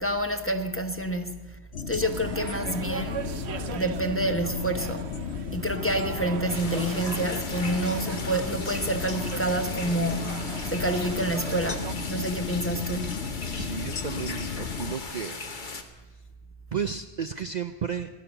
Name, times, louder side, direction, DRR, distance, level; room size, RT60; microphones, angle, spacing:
voice 1, 0.0-1.6 1.9-3.2 3.7-5.1 5.5-13.4, right 1 dB, 15° left, 0.9 m, -28 dB
sound 1, 1.7-14.9, left 6 dB, 75° left, 1.1 m, -34 dB
sound 2, 2.0-12.0, right 7 dB, 70° right, 1.1 m, -40 dB
sound 3, 6.5-15.8, left 3 dB, 45° left, 1.3 m, -38 dB
voice 2, 13.5-15.4 15.9-16.0 16.7-18.1, right 7 dB, 50° right, 0.6 m, -33 dB
16.5 x 11.5 x 6.9 m
omnidirectional pair, 1.1 m